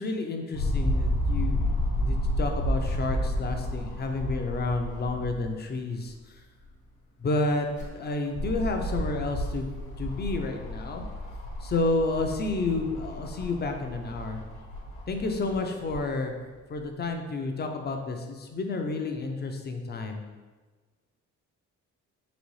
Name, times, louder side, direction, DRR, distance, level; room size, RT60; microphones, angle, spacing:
voice 1, 0.0-6.1 7.2-7.7 7.9-9.7 10.0-11.0 11.6-14.4 15.1-16.3 16.7-20.2, left 3 dB, 35° left, 4 dB, 0.5 m, -30 dB
sound 1, 0.5-5.6 6.0-6.1 7.5-16.0 16.8-16.9, equal, 75° left, 1.1 m, -31 dB
4.0 x 3.1 x 3.1 m, 1.3 s
cardioid pair, 90°, 30 cm